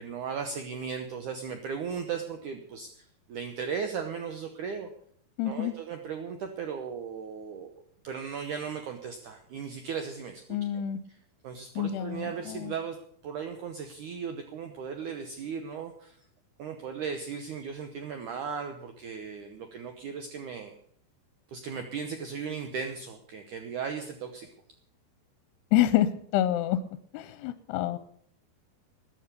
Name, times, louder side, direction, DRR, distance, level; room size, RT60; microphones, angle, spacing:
voice 1, 0.0-4.9 5.5-7.7 8.0-10.8 11.1-11.2 11.4-13.0 13.2-16.3 16.6-20.7 21.5-24.5, right 6 dB, 80° right, 6 dB, 1.8 m, -37 dB
voice 2, 5.4-5.7 10.5-11.0 11.8-12.2 12.5-12.7 25.7-26.1 26.3-26.8 27.1-28.0, left 12 dB, 80° left, 13 dB, 2.6 m, -26 dB
13.5 x 11.0 x 6.8 m, 0.64 s
omnidirectional pair, 5.0 m